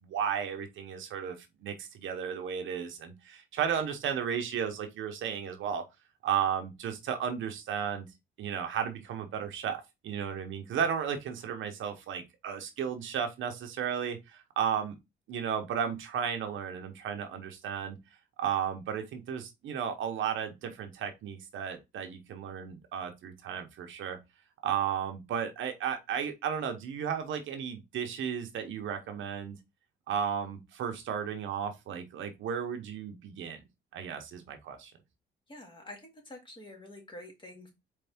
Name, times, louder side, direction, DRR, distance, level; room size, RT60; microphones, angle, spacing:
voice 1, 0.0-5.8 6.2-8.1 8.4-14.9 15.3-18.0 18.4-24.2 24.6-29.6 30.1-33.6 33.9-34.9, right 8 dB, 75° right, 1.0 m, -34 dB
voice 2, 35.5-37.7, left 1 dB, 25° left, 2.1 m, -47 dB
4.5 x 3.3 x 3.5 m
cardioid pair, 90°, 20 cm